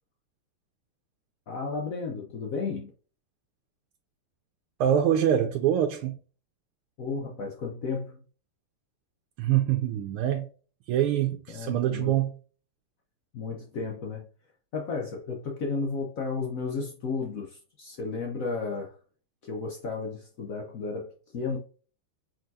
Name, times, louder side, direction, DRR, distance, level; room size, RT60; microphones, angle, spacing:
voice 1, 1.5-2.9 7.0-8.2 11.5-12.2 13.3-14.2 14.7-18.9 19.4-21.6, left 4 dB, 65° left, 0.8 m, -33 dB
voice 2, 4.8-6.2 9.4-10.5 10.9-12.4, right 10 dB, 90° right, 1.5 m, -25 dB
4.9 x 3.9 x 2.6 m
omnidirectional pair, 2.3 m